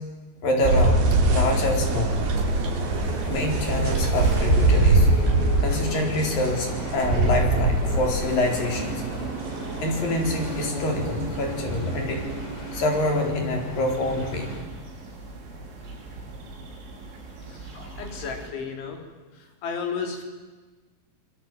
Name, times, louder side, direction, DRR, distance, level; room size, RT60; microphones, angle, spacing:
voice 1, 0.4-2.2 2.9-3.0 3.3-5.1 5.6-9.0 9.8-12.2 12.7-14.5 17.7-18.0, left 1 dB, 50° left, 2 dB, 5.6 m, -26 dB
sound 1, 0.6-13.1, right 2 dB, 65° right, 5.3 m, -24 dB
sound 2, 1.1-14.6, left 1 dB, 30° left, 6.6 m, -37 dB
sound 3, 2.1-18.5, right 2 dB, 85° right, 8.2 m, -41 dB
voice 2, 17.5-19.0 19.4-20.2, left 5 dB, 75° left, 4 dB, 6.2 m, -33 dB
27.0 x 22.0 x 9.2 m, 1.3 s
omnidirectional pair, 5.5 m